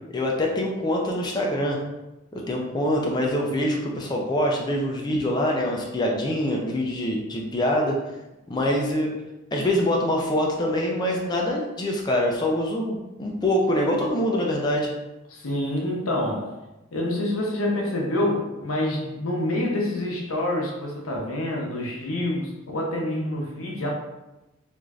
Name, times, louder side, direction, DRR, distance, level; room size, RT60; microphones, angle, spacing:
voice 1, 0.1-1.8 2.3-7.9 8.5-9.1 9.5-14.9, left 1 dB, 20° left, -1 dB, 0.3 m, -24 dB
voice 2, 15.3-16.6 16.9-23.9, left 1 dB, 90° left, -1 dB, 0.7 m, -27 dB
3.1 x 2.5 x 2.4 m, 0.99 s
head